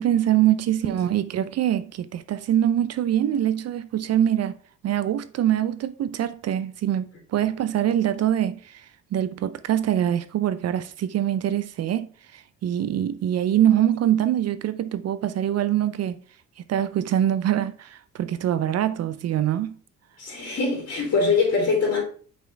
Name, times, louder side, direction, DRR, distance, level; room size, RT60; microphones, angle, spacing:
voice 1, 0.0-4.6 4.8-16.2 16.7-19.8, right 11 dB, 55° right, 0.5 m, -24 dB
voice 2, 20.2-22.0, left 4 dB, 55° left, 3.0 m, -23 dB
5.9 x 4.3 x 4.4 m
cardioid pair, 90°, 30 cm